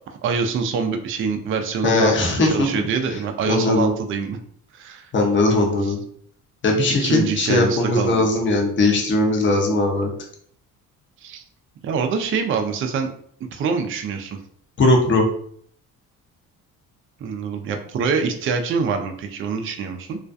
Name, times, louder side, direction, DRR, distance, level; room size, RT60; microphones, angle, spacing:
voice 1, 0.2-4.4 4.7-5.1 5.8-5.9 7.0-8.2 11.2-11.4 11.8-13.1 13.5-14.4 17.2-20.2, right 5 dB, 35° right, 5 dB, 0.4 m, -25 dB
voice 2, 1.8-2.9 3.5-3.9 5.1-6.0 6.6-10.1 14.8-15.3, left 2 dB, 30° left, 0 dB, 0.8 m, -19 dB
2.4 x 2.2 x 2.5 m, 0.62 s
supercardioid pair, 65°, 39 cm